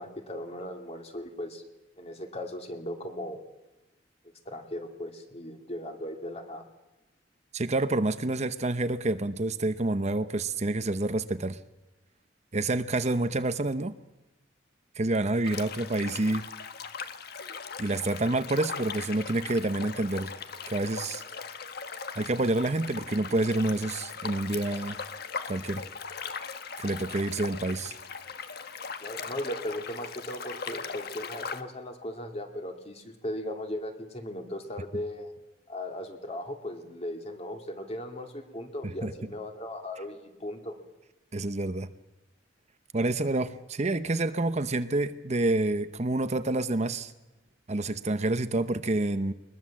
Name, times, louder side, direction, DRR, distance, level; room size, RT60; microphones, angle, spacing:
voice 1, 0.0-1.6 2.0-3.4 4.5-6.6 29.0-35.3 35.7-40.8, left 1 dB, 35° left, 4 dB, 2.8 m, -37 dB
voice 2, 7.5-11.6 12.5-14.0 15.0-16.5 17.8-20.3 20.7-21.2 22.2-25.0 25.4-25.9 26.8-27.9 39.0-39.1 41.3-41.9 42.9-47.1 47.7-49.3, right 2 dB, 35° right, 11 dB, 0.8 m, -28 dB
sound 1, 15.4-31.6, left 5 dB, 55° left, 1.3 m, -39 dB
22.5 x 21.0 x 7.4 m, 1.0 s
head